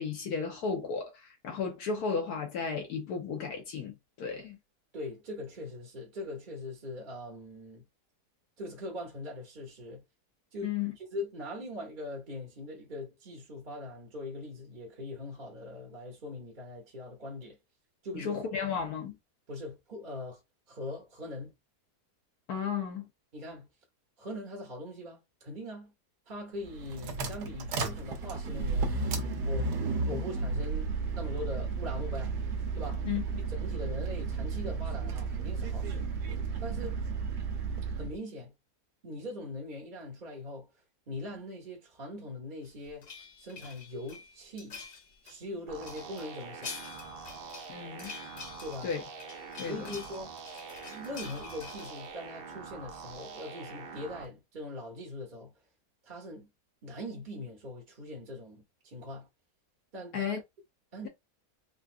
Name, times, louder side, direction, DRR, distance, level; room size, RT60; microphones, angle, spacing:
voice 1, 0.0-4.6 10.6-10.9 18.1-19.1 22.5-23.0 33.0-33.2 47.7-48.1 48.8-49.0 49.6-49.9 60.1-60.4, left 6 dB, 75° left, 1.3 m, -34 dB
voice 2, 4.9-7.8 8.6-10.0 10.5-17.6 18.0-18.3 19.5-20.4 20.7-21.5 23.3-23.7 24.2-25.9 26.3-29.0 29.4-29.7 30.0-32.3 32.7-33.1 33.5-36.1 36.6-37.0 38.0-38.5 39.0-40.7 41.1-43.1 43.4-44.8 45.2-46.8 48.6-48.9 49.6-50.3 50.8-55.5 56.0-56.5 56.8-59.3 59.9-60.3 60.9-61.1, left 1 dB, 40° right, 0.8 m, -41 dB
sound 1, 26.6-38.2, right 4 dB, 90° right, 1.3 m, -33 dB
sound 2, 42.6-45.4 45.8-52.1, left 5 dB, 55° left, 0.7 m, -47 dB
sound 3, 45.7-54.2, right 5 dB, 70° right, 0.5 m, -45 dB
3.8 x 2.3 x 2.4 m
omnidirectional pair, 1.7 m